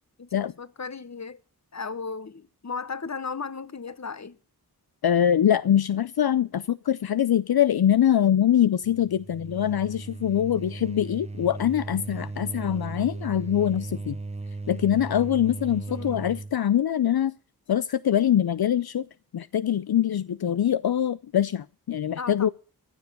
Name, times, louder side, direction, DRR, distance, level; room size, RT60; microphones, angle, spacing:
voice 1, 0.2-1.4 1.7-4.4 15.9-16.2 22.2-22.5, left 5 dB, 45° left, 1.0 m, -35 dB
voice 2, 5.0-14.2 14.7-17.3 17.7-19.1 19.3-22.5, left 10 dB, 75° left, 0.5 m, -23 dB
sound 1, 8.8-16.6, right 3 dB, 15° right, 0.6 m, -36 dB
15.0 x 6.9 x 7.8 m
wide cardioid pair, 50°, 38 cm